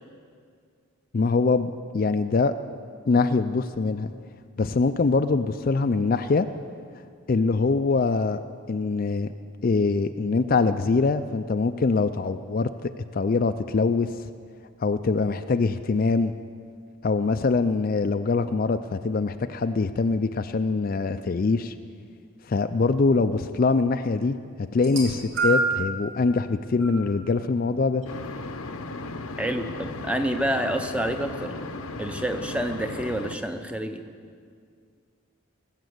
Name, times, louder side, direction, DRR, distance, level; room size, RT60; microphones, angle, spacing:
voice 1, 1.1-2.6 3.1-4.1 4.6-6.5 7.3-8.4 8.7-9.3 9.6-14.3 14.8-16.3 17.0-21.7 22.5-28.0, left 4 dB, 40° left, 9 dB, 0.4 m, -23 dB
sound 1, 24.7-25.9 26.8-27.0 28.0-28.1, right 3 dB, 65° right, 3.0 m, -26 dB
sound 2, 28.1-33.4, left 2 dB, 85° left, 0.8 m, -36 dB
voice 2, 29.4-31.5 32.0-34.0, right 1 dB, 5° right, 6 dB, 0.6 m, -28 dB
19.0 x 7.4 x 7.8 m, 2.1 s
head